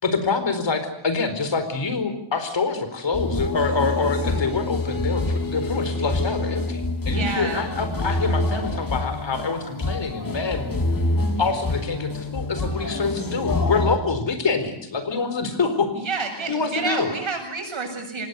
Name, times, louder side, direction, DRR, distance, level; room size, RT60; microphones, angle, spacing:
voice 1, 0.0-10.7 11.4-15.9 16.4-17.1, left 4 dB, 65° left, 9 dB, 4.4 m, -26 dB
sound 1, 3.1-14.0, left 2 dB, 45° left, 3.4 m, -26 dB
voice 2, 7.1-7.7 15.9-18.3, right 4 dB, 75° right, 4 dB, 7.9 m, -29 dB
26.0 x 19.5 x 8.3 m, 0.77 s
wide cardioid pair, 135°, 47 cm